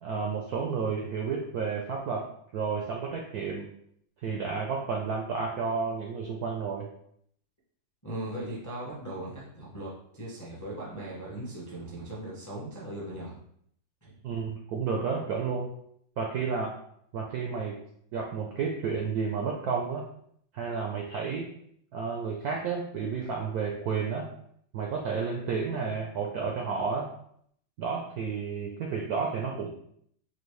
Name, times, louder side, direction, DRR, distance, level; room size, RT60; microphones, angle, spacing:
voice 1, 0.0-2.3 2.5-3.7 4.2-6.9 14.2-15.7 16.2-16.7 17.1-17.8 18.1-20.1 20.5-21.5 21.9-24.3 24.7-27.1 27.8-29.7, right 5 dB, 80° right, 0 dB, 0.8 m, -31 dB
voice 2, 8.0-13.4 14.0-14.1, right 1 dB, 25° left, -5 dB, 0.4 m, -38 dB
4.4 x 2.6 x 3.1 m, 0.67 s
omnidirectional pair, 2.1 m